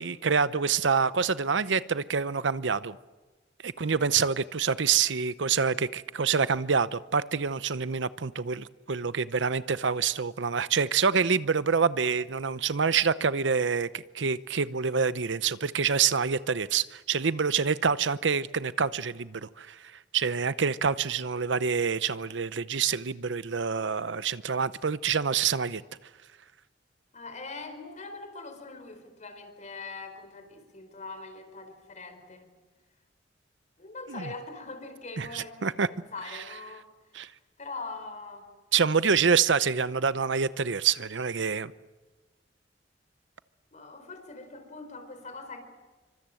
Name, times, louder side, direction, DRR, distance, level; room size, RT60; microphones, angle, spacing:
voice 1, 0.0-3.0 3.6-19.8 20.1-25.8 34.1-34.2 35.2-35.9 37.1-37.3 38.7-41.7, right 6 dB, 70° right, 15 dB, 0.8 m, -26 dB
voice 2, 3.7-4.1 27.1-32.5 33.8-36.9 37.1-37.3 37.6-38.5 43.7-45.6, left 3 dB, 40° left, 8 dB, 4.4 m, -42 dB
27.5 x 25.0 x 7.7 m, 1.2 s
head